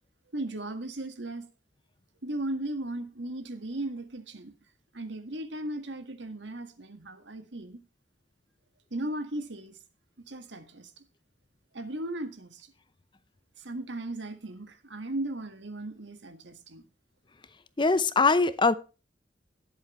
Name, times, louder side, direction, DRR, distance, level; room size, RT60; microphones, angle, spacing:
voice 1, 0.3-1.5 2.2-4.5 4.9-7.8 8.9-9.8 10.3-11.0 11.7-12.7 13.6-16.8, right 1 dB, 85° right, 1.8 m, -36 dB
voice 2, 17.8-18.7, left 4 dB, 25° left, 0.7 m, -22 dB
19.0 x 7.8 x 3.2 m
head